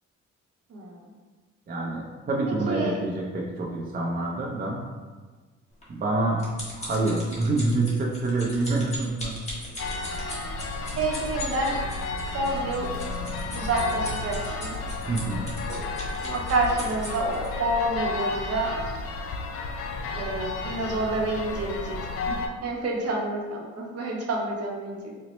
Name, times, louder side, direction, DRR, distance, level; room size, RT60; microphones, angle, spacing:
voice 1, 0.7-1.0 2.7-3.0 10.9-11.8 12.3-12.9 13.5-14.7 16.2-18.7 20.1-22.0 22.3-22.4 22.6-25.1, right 2 dB, 55° right, -1 dB, 0.8 m, -28 dB
voice 2, 1.7-4.8 5.9-6.4 6.8-9.4 15.1-15.5, right 2 dB, 30° right, -3 dB, 0.5 m, -27 dB
sound 1, 5.8-17.5 18.1-18.3 18.6-18.7, left 1 dB, 20° left, 1.3 m, -39 dB
sound 2, 9.8-22.5, left 3 dB, 50° left, 0.5 m, -32 dB
4.1 x 2.1 x 3.0 m, 1.4 s
cardioid pair, 90°, 30 cm